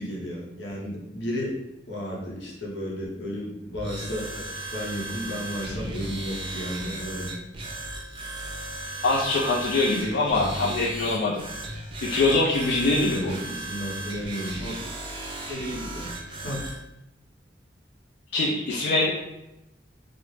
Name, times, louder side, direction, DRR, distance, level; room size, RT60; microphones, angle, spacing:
voice 1, 0.0-1.6 1.9-7.3 10.3-10.7 12.9-14.9 15.5-16.1 16.4-16.6, equal, 85° left, -3 dB, 0.8 m, -33 dB
sound 1, 3.7-16.8, right 2 dB, 30° right, 0.4 m, -36 dB
voice 2, 9.0-11.4 12.0-13.3 18.3-19.1, left 2 dB, 65° left, -4 dB, 0.4 m, -23 dB
2.4 x 2.0 x 3.1 m, 0.90 s
head